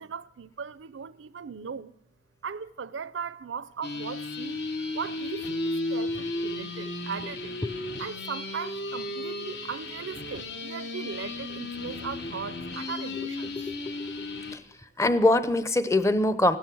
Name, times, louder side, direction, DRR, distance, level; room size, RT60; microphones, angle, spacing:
voice 1, 0.0-1.9 2.4-4.6 4.9-7.5 8.0-13.6, right 6 dB, 85° right, 0.5 m, -38 dB
sound 1, 3.8-14.6, left 2 dB, 65° left, 1.1 m, -34 dB
voice 2, 15.0-16.6, left 1 dB, 15° left, 0.6 m, -23 dB
16.5 x 12.5 x 6.1 m
head